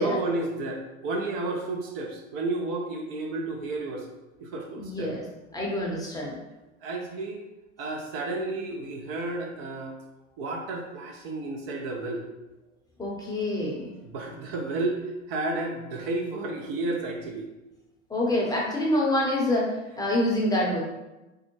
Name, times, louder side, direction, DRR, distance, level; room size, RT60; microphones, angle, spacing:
voice 1, 0.0-4.1 4.4-5.1 6.8-7.5 7.8-10.0 10.4-12.2 14.0-17.5, right 2 dB, 50° right, 2 dB, 0.6 m, -32 dB
voice 2, 4.8-5.2 5.5-6.4 13.0-13.9 18.1-20.8, left 1 dB, 10° left, -3 dB, 0.7 m, -26 dB
3.5 x 2.0 x 3.1 m, 1.0 s
figure-of-eight pair, 80°, 37 cm